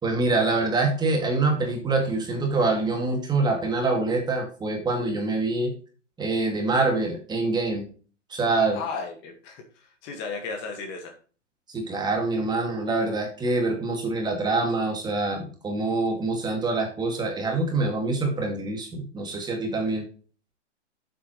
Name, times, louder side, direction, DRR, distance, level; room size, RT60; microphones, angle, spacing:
voice 1, 0.0-5.7 6.2-7.9 8.3-8.8 11.7-20.1, right 3 dB, 10° right, 2 dB, 2.3 m, -25 dB
voice 2, 8.7-11.2, left 4 dB, 30° left, 5 dB, 1.9 m, -35 dB
9.3 x 8.1 x 3.2 m, 0.38 s
hypercardioid pair, 140°, 37 cm